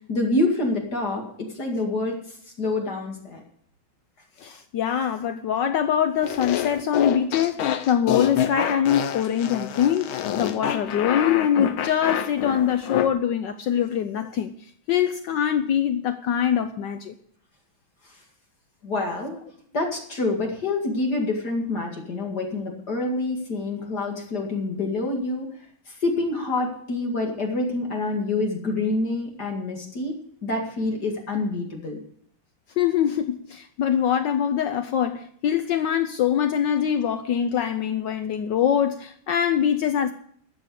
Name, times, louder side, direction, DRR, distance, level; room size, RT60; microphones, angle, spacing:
voice 1, 0.1-2.2 2.6-3.4 18.8-19.4 19.7-25.5 25.9-32.0, left 2 dB, 50° left, 2.7 m, -27 dB
voice 2, 4.4-14.5 14.9-17.1 32.8-40.1, left 9 dB, 70° left, 1.3 m, -23 dB
sound 1, 6.2-13.1, left 10 dB, 90° left, 1.7 m, -27 dB
12.5 x 7.8 x 8.2 m
omnidirectional pair, 2.2 m